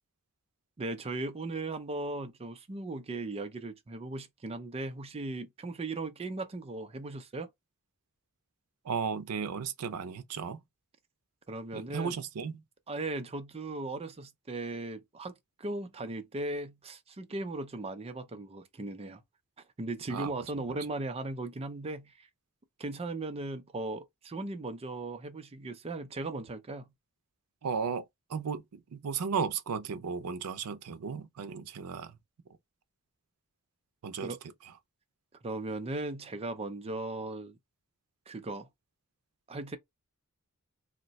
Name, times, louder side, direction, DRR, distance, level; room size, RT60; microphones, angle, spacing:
voice 1, 0.8-7.5 11.5-12.2 12.9-15.3 15.6-19.2 19.8-22.3 22.8-26.9 34.2-34.4 35.4-37.6 38.3-38.7 39.5-39.8, right 2 dB, 25° right, 0.4 m, -37 dB
voice 2, 8.8-10.6 11.7-12.6 20.1-20.3 27.6-32.2 34.0-34.4, right 6 dB, 80° right, 0.5 m, -35 dB
2.6 x 2.1 x 3.9 m
head